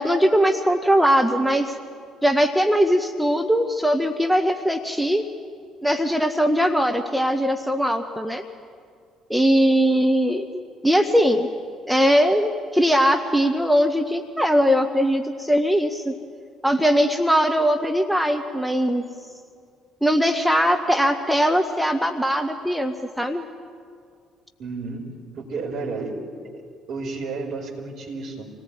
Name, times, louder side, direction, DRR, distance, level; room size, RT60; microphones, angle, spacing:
voice 1, 0.0-1.7 2.2-5.2 5.8-8.4 9.3-11.5 11.9-16.1 16.6-19.0 20.0-23.4, equal, ahead, 6 dB, 1.6 m, -20 dB
voice 2, 24.6-25.1 25.3-26.1 26.9-28.5, right 4 dB, 55° right, 1 dB, 5.0 m, -31 dB
27.0 x 18.5 x 9.1 m, 2.2 s
figure-of-eight pair, 50°, 0 cm